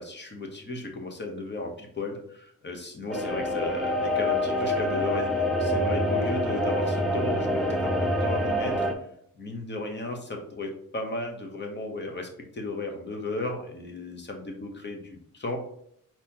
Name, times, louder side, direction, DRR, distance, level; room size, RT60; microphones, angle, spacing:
voice 1, 0.0-7.9 8.2-8.9 9.4-15.6, left 2 dB, 30° left, 3 dB, 1.0 m, -35 dB
sound 1, 3.1-8.9, left 1 dB, ahead, 0.6 m, -26 dB
4.4 x 4.0 x 2.9 m, 0.69 s
wide cardioid pair, 130°, 34 cm